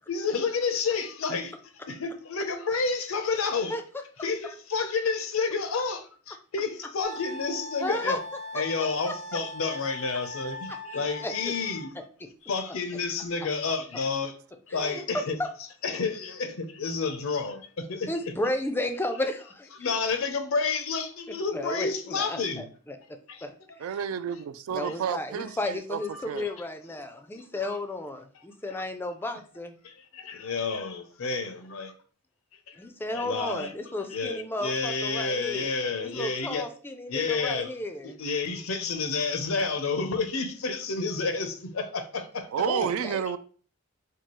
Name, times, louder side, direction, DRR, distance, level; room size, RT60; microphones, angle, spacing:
voice 1, 0.1-1.5 1.9-3.7 4.2-8.2 8.5-11.9 12.5-14.3 14.7-15.4 15.8-18.1 19.8-22.7 23.3-23.4 24.8-24.9 26.1-26.5 27.3-27.8 28.7-28.8 29.8-31.9 32.7-32.8 33.1-33.7 34.1-36.7 37.1-37.7 38.0-42.5, left 4 dB, 85° left, 0.6 m, -30 dB
Wind instrument woodwind instrument, 7.0-11.9, left 1 dB, 35° right, 0.7 m, -40 dB
voice 2, 7.8-8.2 10.7-10.8 11.2-11.5 14.7-15.0 15.4-15.5 18.1-19.7 21.5-23.0 23.4-23.5 24.7-29.8 32.8-38.2 42.6-43.2, left 1 dB, 10° left, 0.3 m, -33 dB
voice 3, 23.8-26.0 26.3-26.5 42.5-43.4, right 8 dB, 80° right, 0.3 m, -30 dB
4.5 x 2.3 x 3.0 m
head